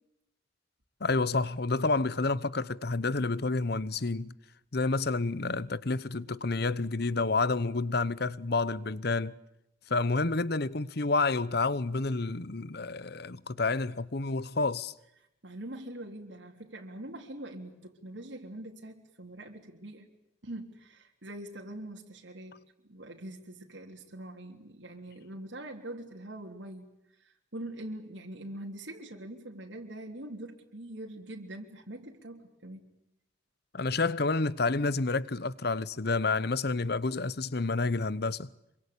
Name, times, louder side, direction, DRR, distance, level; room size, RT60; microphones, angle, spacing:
voice 1, 1.0-4.3 4.7-9.4 9.9-14.9 33.7-38.5, left 3 dB, 55° left, 0.9 m, -29 dB
voice 2, 15.4-20.1 20.4-22.6 22.8-26.9 27.2-32.9, right 1 dB, 75° right, 3.6 m, -43 dB
26.5 x 24.5 x 8.6 m
head